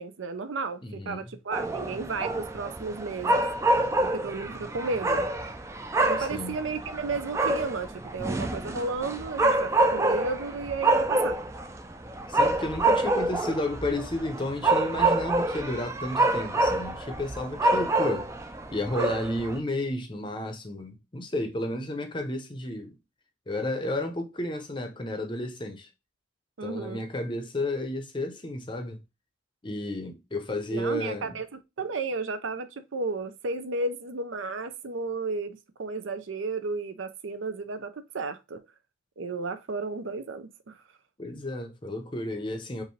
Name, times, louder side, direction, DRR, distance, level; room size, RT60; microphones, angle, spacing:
voice 1, 0.0-3.4 4.0-5.3 6.0-11.4 26.6-27.0 30.7-31.5 31.8-38.6 39.2-40.7, right 3 dB, 75° right, 0.6 m, -33 dB
voice 2, 0.8-1.3 6.2-6.6 12.3-18.3 18.7-23.0 23.5-25.9 26.6-29.0 29.6-31.4 41.2-42.8, left 1 dB, 25° left, 0.6 m, -32 dB
sound 1, 1.5-19.6, right 2 dB, 15° right, 0.3 m, -27 dB
5.3 x 2.6 x 3.1 m
head